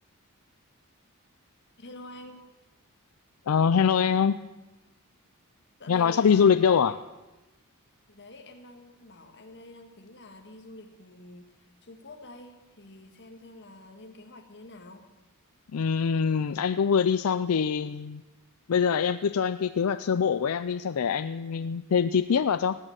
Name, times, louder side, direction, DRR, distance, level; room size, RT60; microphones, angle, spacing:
voice 1, 1.8-2.5 5.8-7.0 8.1-15.1, left 2 dB, 50° left, 6 dB, 1.8 m, -47 dB
voice 2, 3.5-4.4 5.9-6.9 15.7-18.2 18.7-22.8, left 6 dB, 70° left, 12 dB, 0.4 m, -24 dB
17.0 x 8.8 x 9.0 m, 1.1 s
head